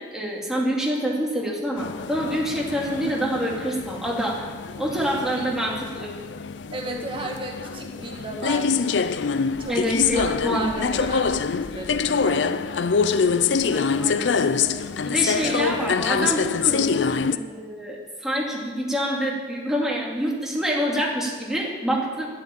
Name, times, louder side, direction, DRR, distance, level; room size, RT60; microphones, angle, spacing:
voice 1, 0.1-4.4 4.8-6.1 9.7-11.3 13.4-14.3 15.0-16.9 17.3-22.3, equal, 5° right, -3 dB, 2.5 m, -27 dB
sound 1, 1.8-17.4, left 5 dB, 75° left, 0.5 m, -25 dB
voice 2, 6.7-8.9 9.6-12.9 14.6-14.9 15.4-15.8, right 2 dB, 30° right, 1 dB, 2.0 m, -35 dB
11.0 x 9.7 x 8.7 m, 1.5 s
head